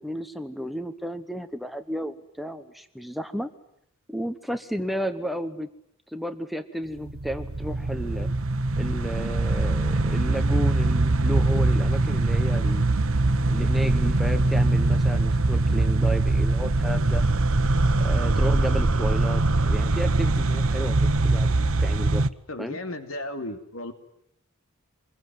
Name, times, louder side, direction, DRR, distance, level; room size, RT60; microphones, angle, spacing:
voice 1, 0.0-3.5 4.1-5.7 6.1-8.3 8.8-12.9 13.5-17.2 18.0-22.2 22.6-22.8, equal, ahead, 8 dB, 1.0 m, -33 dB
sound 1, 7.0-22.3, right 2 dB, 70° right, 1.1 m, -22 dB
voice 2, 22.5-23.9, left 1 dB, 70° left, 8 dB, 2.9 m, -34 dB
26.0 x 22.0 x 9.5 m, 0.73 s
head